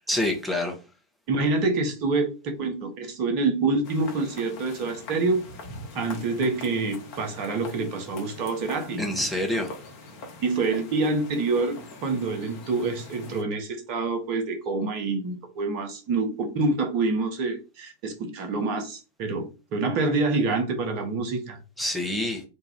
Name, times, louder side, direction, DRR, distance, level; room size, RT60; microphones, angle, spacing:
voice 1, 0.1-0.7 9.0-9.7 21.8-22.4, left 1 dB, ahead, 0.8 m, -27 dB
voice 2, 1.3-5.4 5.9-9.0 9.5-9.7 10.4-21.6, right 3 dB, 45° right, 0.8 m, -27 dB
sound 1, 3.8-13.4, left 2 dB, 45° left, 0.9 m, -43 dB
2.6 x 2.3 x 3.3 m
figure-of-eight pair, 90°, 0 cm